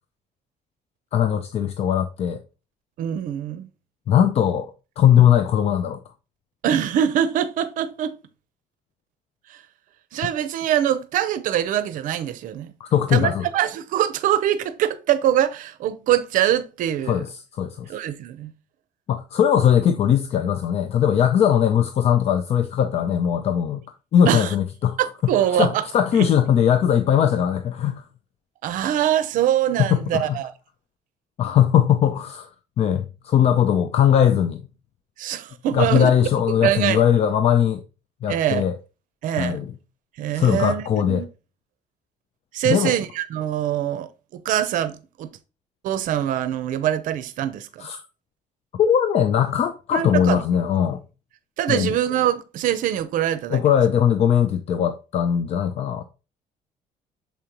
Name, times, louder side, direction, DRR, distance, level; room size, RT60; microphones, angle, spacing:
voice 1, 1.1-2.4 4.1-6.0 12.8-13.5 17.1-17.9 19.1-23.8 24.1-25.3 25.6-28.0 29.8-30.4 31.4-32.5 32.8-34.6 35.7-37.8 38.2-38.8 39.3-39.7 40.3-41.3 42.6-43.0 47.8-48.0 48.8-51.0 51.7-51.9 53.5-56.0, left 9 dB, 45° left, 0.5 m, -20 dB
voice 2, 3.0-3.7 6.6-8.2 9.5-9.6 10.1-12.7 13.1-17.2 17.9-18.5 24.2-24.5 25.0-25.8 26.2-26.3 28.6-30.5 35.2-36.1 36.6-37.0 38.3-38.6 39.2-39.6 40.2-41.3 42.5-45.3 45.8-47.9 49.9-50.4 51.6-53.6, right 11 dB, 70° right, 0.6 m, -23 dB
6.9 x 5.0 x 2.9 m
cardioid pair, 145°, 14 cm